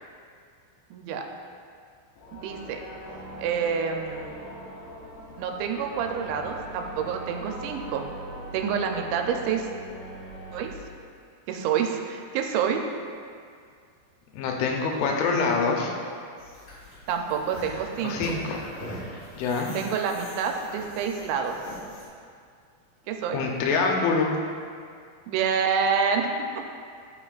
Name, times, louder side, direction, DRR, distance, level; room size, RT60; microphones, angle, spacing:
voice 1, 0.9-1.2 2.3-2.8 3.4-4.4 5.4-8.1 8.5-9.7 10.5-10.7 11.5-12.8 17.1-18.2 19.7-21.6 23.1-23.4 25.3-26.7, right 6 dB, 80° right, 4 dB, 2.8 m, -27 dB
sound 1, 2.1-10.7, right 1 dB, 75° left, 3.3 m, -41 dB
voice 2, 14.3-15.9 18.0-18.6 19.3-19.7 23.3-24.3, left 4 dB, 90° left, 1 dB, 3.3 m, -25 dB
sound 2, 16.4-22.1, equal, 55° left, 3.5 m, -42 dB
13.0 x 5.6 x 2.4 m, 2.2 s
omnidirectional pair, 5.4 m